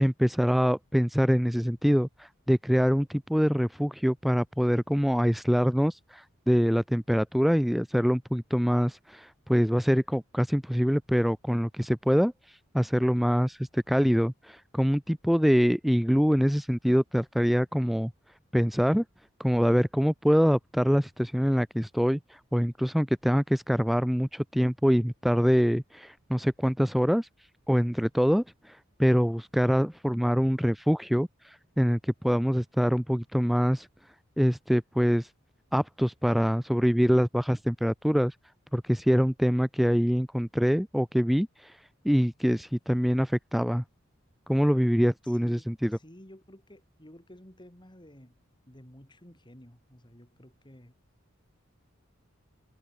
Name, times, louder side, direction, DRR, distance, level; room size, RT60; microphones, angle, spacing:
voice 1, 0.0-12.3 12.7-18.1 18.5-19.0 19.4-22.2 22.5-27.3 27.7-31.3 31.8-33.9 34.4-35.3 35.7-38.3 38.7-41.7 42.0-43.8 44.5-46.0, equal, ahead, 0.4 m, -24 dB
voice 2, 45.2-48.3 48.7-50.9, equal, 25° left, 5.1 m, -52 dB
head